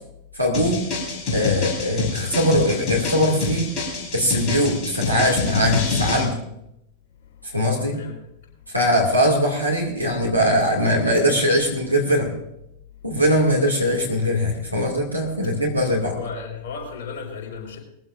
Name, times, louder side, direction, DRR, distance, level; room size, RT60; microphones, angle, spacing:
voice 1, 0.3-0.9 1.3-3.7 4.1-6.4 7.4-8.0 8.7-12.3 13.0-16.1, equal, 90° right, -1 dB, 2.3 m, -21 dB
sound 1, 0.5-6.2, left 4 dB, 30° left, 4.9 m, -26 dB
voice 2, 16.0-17.8, left 5 dB, 50° left, 0 dB, 5.1 m, -34 dB
21.0 x 15.0 x 2.6 m, 0.80 s
figure-of-eight pair, 90°, 0 cm